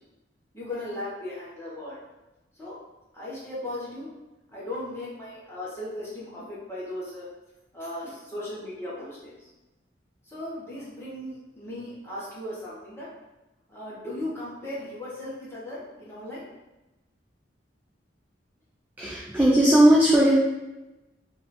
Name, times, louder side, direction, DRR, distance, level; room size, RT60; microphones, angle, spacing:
voice 1, 0.5-2.0 2.5-2.8 3.1-4.1 4.5-7.3 7.7-9.5 10.2-13.1 13.7-16.5, left 1 dB, 15° left, -8 dB, 1.3 m, -37 dB
voice 2, 19.0-20.3, right 1 dB, 10° right, -6 dB, 0.5 m, -18 dB
4.0 x 2.6 x 4.3 m, 1.0 s
head